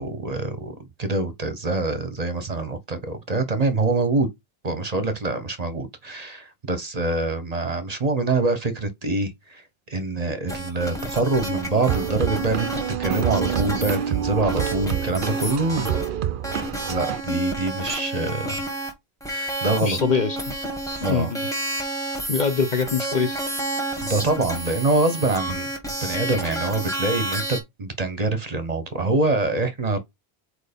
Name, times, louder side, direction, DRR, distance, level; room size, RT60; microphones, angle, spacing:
voice 1, 0.0-4.3 4.6-9.6 9.9-12.7 13.0-16.0 16.8-18.6 19.3-20.0 21.0-21.3 24.0-25.7 26.0-30.0, right 3 dB, 40° right, 0.9 m, -25 dB
sound 1, 10.5-16.1 16.4-18.9 19.2-27.6, right 1 dB, 5° left, 1.8 m, -30 dB
sound 2, 11.9-17.2, right 10 dB, 60° right, 0.6 m, -27 dB
voice 2, 19.8-20.5 21.0-21.5 22.3-23.4, left 6 dB, 50° left, 0.9 m, -23 dB
4.6 x 4.5 x 5.1 m
omnidirectional pair, 1.1 m